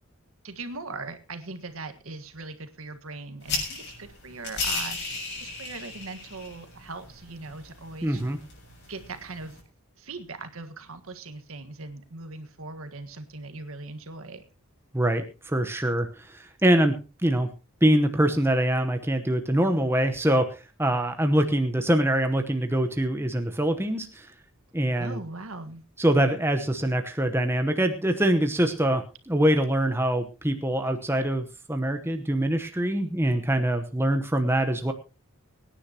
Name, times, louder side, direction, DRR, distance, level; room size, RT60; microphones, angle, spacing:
voice 1, 0.4-8.2 8.9-9.6 10.0-14.4 24.9-25.8, right 3 dB, 75° right, 9 dB, 1.6 m, -40 dB
sound 1, 3.4-9.6, left 3 dB, 50° left, 7.3 m, -36 dB
voice 2, 8.0-8.4 14.9-17.0 17.2-17.5 17.8-20.5 20.8-24.3 24.7-25.2 26.0-34.9, right 1 dB, 10° right, 6 dB, 1.0 m, -24 dB
24.0 x 10.0 x 2.9 m, 0.30 s
head